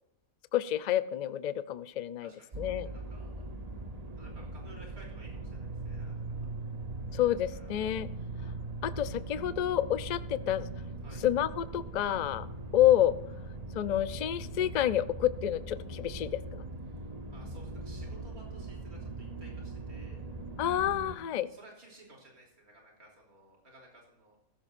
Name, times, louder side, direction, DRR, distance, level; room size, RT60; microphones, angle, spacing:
voice 1, 0.5-2.3 2.6-2.9 7.1-8.1 8.8-10.7 11.2-12.5 12.7-13.2 13.7-16.4 20.6-21.5, left 12 dB, 70° left, 14 dB, 0.4 m, -28 dB
voice 2, 2.2-3.4 4.2-6.5 7.5-7.9 11.0-11.2 16.9-17.0 17.3-20.3 21.5-24.4, right 1 dB, 85° right, -1 dB, 3.6 m, -56 dB
sound 1, 2.5-21.2, right 2 dB, 30° right, 1.0 m, -41 dB
16.0 x 14.5 x 2.5 m, 0.82 s
omnidirectional pair, 1.5 m